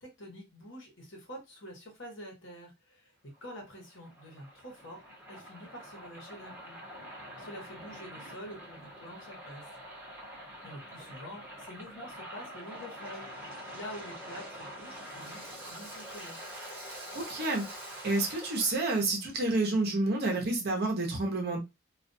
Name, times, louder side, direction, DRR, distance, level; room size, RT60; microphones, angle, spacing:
voice 1, 0.0-3.1 3.4-5.0 5.3-7.1 7.4-9.6 10.6-16.5, equal, 60° left, 0 dB, 1.1 m, -47 dB
Waves surf, 3.3-19.1, equal, 10° right, 0.9 m, -45 dB
voice 2, 17.1-21.6, right 2 dB, 50° right, 0 dB, 0.8 m, -29 dB
2.4 x 2.3 x 2.6 m, 0.22 s
head